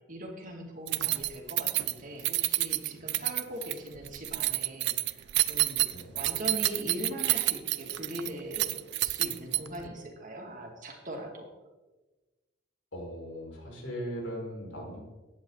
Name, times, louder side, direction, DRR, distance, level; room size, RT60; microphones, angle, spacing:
voice 1, 0.1-5.9 6.1-11.5, equal, 45° right, 1 dB, 2.5 m, -41 dB
Keys jangling, 0.9-9.9, right 17 dB, 60° right, 0.5 m, -29 dB
voice 2, 12.9-15.0, equal, 75° left, -2 dB, 5.4 m, -39 dB
16.0 x 10.5 x 4.1 m, 1.2 s
head